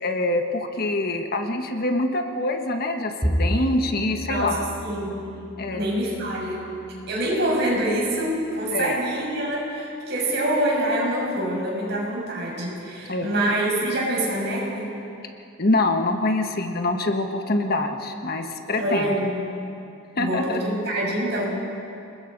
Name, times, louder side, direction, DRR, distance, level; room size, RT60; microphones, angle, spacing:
voice 1, 0.0-4.7 5.6-5.8 8.7-9.0 13.1-13.5 15.6-19.1 20.2-20.6, left 2 dB, 45° left, 5 dB, 1.3 m, -25 dB
Bowed string instrument, 3.2-6.7, equal, 5° right, 2.3 m, -30 dB
voice 2, 4.8-5.3 5.7-6.7 7.1-15.0 18.8-19.4 20.1-21.5, right 1 dB, 55° right, -3 dB, 6.5 m, -25 dB
29.0 x 20.5 x 5.3 m, 2.7 s
head